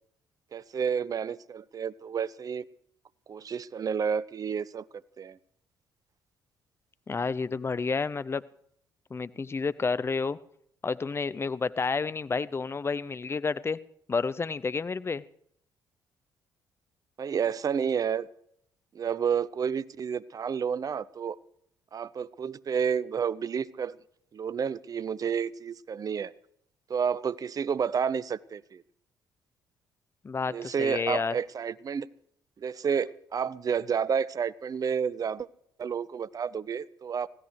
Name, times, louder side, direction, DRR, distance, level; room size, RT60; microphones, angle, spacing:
voice 1, 0.5-2.6 3.3-4.9 5.2-5.4 17.2-18.3 18.9-21.4 21.9-24.0 24.3-26.3 26.9-28.8 30.5-32.1 32.6-35.5 35.8-37.3, right 7 dB, 40° right, 19 dB, 0.6 m, -30 dB
voice 2, 7.1-8.4 9.1-10.4 10.8-13.8 14.1-15.2 30.2-31.3, left 4 dB, 25° left, 17 dB, 0.6 m, -30 dB
24.5 x 16.0 x 3.2 m, 0.69 s
figure-of-eight pair, 45°, 10 cm